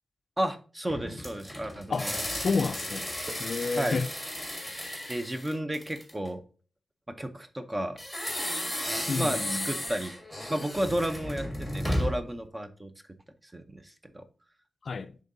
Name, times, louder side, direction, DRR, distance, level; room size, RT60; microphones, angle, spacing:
voice 1, 0.4-2.2 3.3-3.4 3.8-4.0 5.1-6.4 7.1-8.0 9.2-10.1 10.5-12.9 13.5-14.2, right 1 dB, 15° right, 0.6 m, -32 dB
sound 1, 0.9-6.3 8.0-12.3, equal, ahead, 1.6 m, -34 dB
voice 2, 1.9-3.1 3.4-4.1 9.1-9.7 14.8-15.2, left 4 dB, 60° left, 0.4 m, -30 dB
10.5 x 3.7 x 2.6 m
wide cardioid pair, 145°, 0 cm